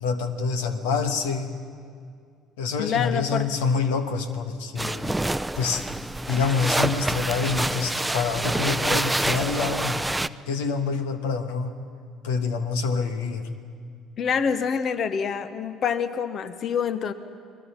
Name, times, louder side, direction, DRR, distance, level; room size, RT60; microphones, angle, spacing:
voice 1, 0.0-1.5 2.6-5.1 5.6-5.8 6.3-10.1 10.5-11.7 12.2-13.4, left 5 dB, 80° left, 8 dB, 1.4 m, -26 dB
voice 2, 2.8-3.5 14.2-17.1, left 7 dB, 50° left, 12 dB, 1.1 m, -26 dB
sound 1, 4.8-10.3, right 1 dB, 10° right, 0.6 m, -27 dB
29.5 x 20.5 x 5.7 m, 2.3 s
hypercardioid pair, 60°, 0 cm